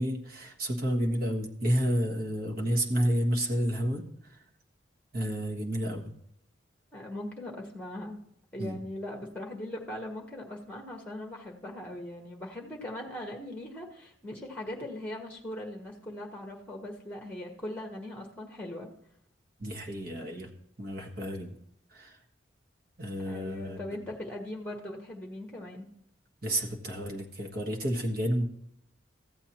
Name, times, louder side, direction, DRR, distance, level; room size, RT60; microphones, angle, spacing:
voice 1, 0.0-4.0 4.3-4.4 5.1-6.1 8.6-8.8 19.6-20.5 20.8-21.5 21.9-22.2 23.0-23.8 26.4-28.4, equal, 50° right, 1 dB, 1.4 m, -30 dB
voice 2, 6.9-8.2 8.5-18.9 23.3-25.9, left 1 dB, 10° left, 1 dB, 1.3 m, -40 dB
14.5 x 7.9 x 3.0 m, 0.75 s
head